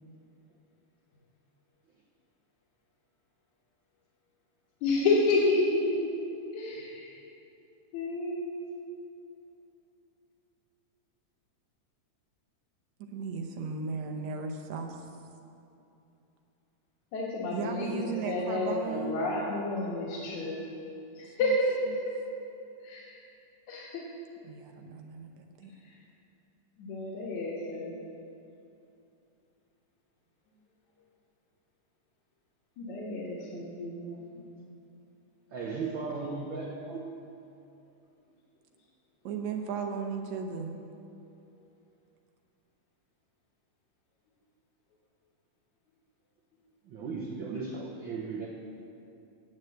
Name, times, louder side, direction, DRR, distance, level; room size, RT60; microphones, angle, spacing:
voice 1, 4.8-6.1 6.5-7.2 7.9-8.8 17.1-20.6 21.2-21.7 22.8-23.2 23.7-24.0 26.8-27.9 32.8-34.7, left 2 dB, 70° left, -7 dB, 2.7 m, -30 dB
voice 2, 13.0-15.1 17.5-19.2 21.3-21.6 21.9-22.0 24.4-25.7 39.2-40.8, right 5 dB, 70° right, 4 dB, 2.1 m, -36 dB
voice 3, 35.5-37.1 46.8-48.5, right 4 dB, 90° right, 0 dB, 1.0 m, -36 dB
9.1 x 8.0 x 7.8 m, 2.7 s
omnidirectional pair, 3.5 m